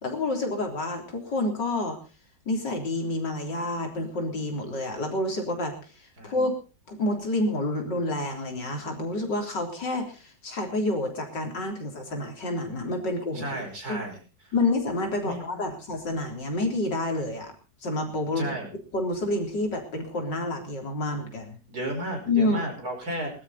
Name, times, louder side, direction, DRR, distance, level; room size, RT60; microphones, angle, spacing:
voice 1, 0.0-2.0 2.5-6.5 6.9-13.6 13.9-14.0 14.5-17.5 17.8-18.5 18.9-21.6 22.3-22.6, left 2 dB, 80° left, 3 dB, 4.1 m, -28 dB
voice 2, 13.3-14.2 14.5-14.6 15.2-15.5 18.4-18.7 21.7-23.3, right 1 dB, 55° right, 2 dB, 5.8 m, -33 dB
21.0 x 12.5 x 4.2 m, 0.35 s
omnidirectional pair, 1.9 m